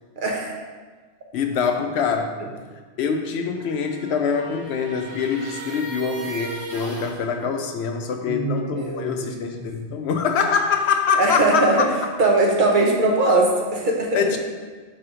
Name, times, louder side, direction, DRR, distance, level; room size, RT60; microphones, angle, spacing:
voice 1, 0.2-0.6 2.4-2.5 8.3-9.6 11.2-11.9 12.2-14.2, right 2 dB, 45° right, 0 dB, 0.9 m, -21 dB
voice 2, 1.3-2.4 3.0-11.9 14.1-14.4, left 6 dB, 70° left, 5 dB, 0.8 m, -24 dB
sound 1, 3.5-7.2, right 3 dB, 85° right, 1.5 m, -37 dB
4.8 x 4.4 x 5.0 m, 1.4 s
omnidirectional pair, 1.2 m